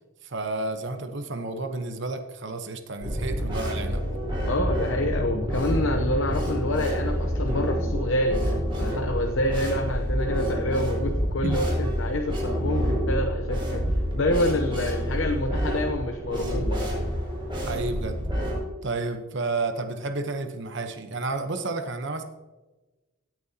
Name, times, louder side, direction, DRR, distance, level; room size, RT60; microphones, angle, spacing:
voice 1, 0.2-4.1 11.4-11.6 17.6-18.2 18.8-22.2, right 3 dB, 55° right, 7 dB, 1.0 m, -31 dB
sound 1, 3.0-18.6, equal, 20° right, 4.2 m, -28 dB
voice 2, 4.4-13.8 14.1-16.9, left 1 dB, 60° left, 4 dB, 0.8 m, -27 dB
16.0 x 8.8 x 2.9 m, 1.1 s
head